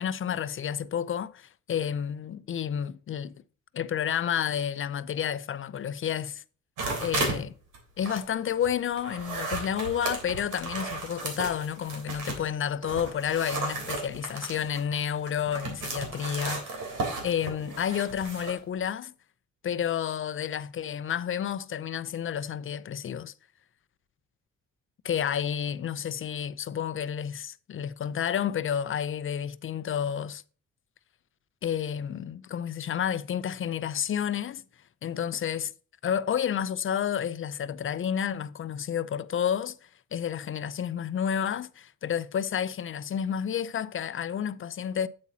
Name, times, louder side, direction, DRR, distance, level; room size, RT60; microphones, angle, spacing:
voice 1, 0.0-3.4 3.7-6.4 7.0-7.6 8.0-16.8 17.2-19.1 19.6-23.3 25.0-30.4 31.6-34.6 35.0-35.7 36.0-45.1, left 8 dB, 45° left, 0.6 m, -30 dB
sound 1, 6.8-7.4 7.7-12.5 12.8-18.6, right 3 dB, 85° right, 3.3 m, -34 dB
8.7 x 8.1 x 2.8 m
cardioid pair, 90°, 30 cm